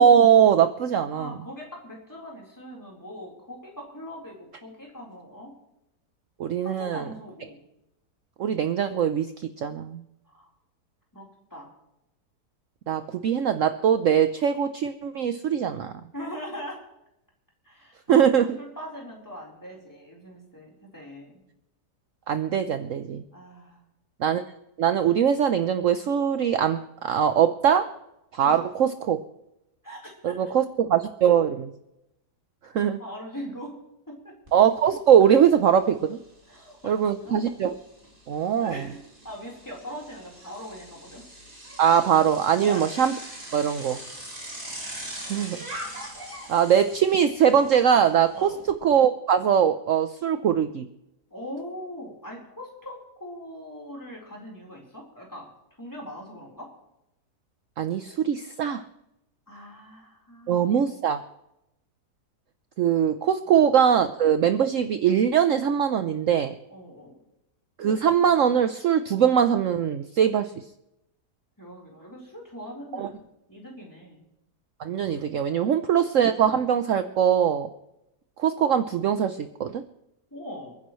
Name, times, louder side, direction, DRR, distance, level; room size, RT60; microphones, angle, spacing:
voice 1, 0.0-1.3 6.4-7.0 8.4-9.3 9.6-10.0 12.9-15.9 18.1-18.6 22.3-23.2 24.2-24.4 24.8-27.9 28.3-29.2 30.2-30.6 30.9-31.7 32.7-33.0 34.5-36.2 36.8-37.7 38.3-38.8 41.8-43.1 43.5-44.0 45.3-45.6 46.5-48.5 48.8-50.9 57.8-58.8 60.5-61.2 62.8-66.5 67.8-70.5 72.9-73.1 74.8-77.7 78.4-79.8, right 8 dB, 60° right, 10 dB, 1.0 m, -21 dB
voice 2, 1.1-5.5 6.6-7.6 10.3-10.5 11.1-11.7 16.1-16.8 17.6-18.3 18.6-21.4 23.3-23.8 28.4-28.6 29.8-30.4 32.7-33.8 34.1-34.3 36.5-37.4 38.3-41.2 42.6-42.9 48.3-48.6 51.3-55.5 55.8-56.7 59.5-61.1 63.5-63.7 66.7-67.2 71.6-74.3 80.3-80.8, equal, 10° left, -2 dB, 4.0 m, -41 dB
Bicycle, 34.5-34.6 34.9-48.7, right 1 dB, 30° right, 3.7 m, -42 dB
29.0 x 10.0 x 3.2 m, 0.86 s
omnidirectional pair, 1.8 m